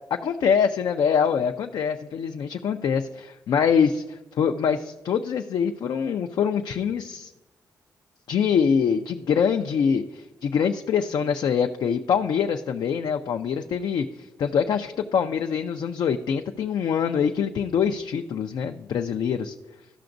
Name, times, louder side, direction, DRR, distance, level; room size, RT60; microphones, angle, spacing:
voice 1, 0.2-4.0 4.4-7.3 8.3-14.1 14.4-19.5, left 7 dB, 70° left, 5 dB, 0.4 m, -24 dB
13.0 x 5.8 x 2.6 m, 1.0 s
cardioid pair, 85°, 7 cm